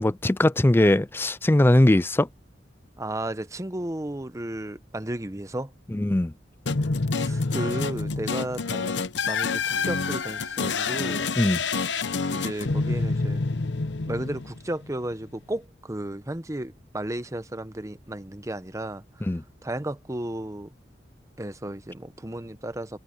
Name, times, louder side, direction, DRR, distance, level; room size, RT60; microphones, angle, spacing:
voice 1, 0.0-2.3 5.9-6.3 11.4-11.6 19.3-19.4, left 1 dB, 10° left, 0.4 m, -20 dB
voice 2, 3.0-5.7 7.1-8.9 9.3-11.3 12.3-13.4 14.1-19.3 19.6-20.7 21.4-23.0, right 1 dB, 15° right, 0.8 m, -34 dB
sound 1, 6.7-14.9, left 4 dB, 75° left, 0.9 m, -27 dB
head